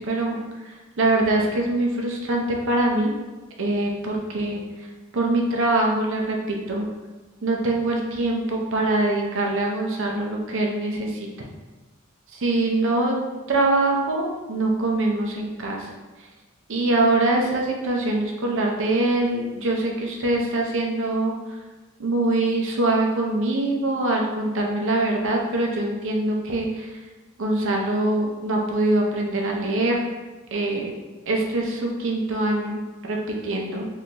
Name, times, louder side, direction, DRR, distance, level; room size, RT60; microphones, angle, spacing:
voice 1, 0.0-3.1 3.6-4.9 5.1-6.9 7.4-11.5 12.3-13.1 13.5-15.9 16.7-21.4 22.0-26.9 27.4-30.0 30.5-30.9 31.3-32.8 33.1-33.9, right 2 dB, 65° right, 0 dB, 0.6 m, -23 dB
3.7 x 2.6 x 2.9 m, 1.2 s
head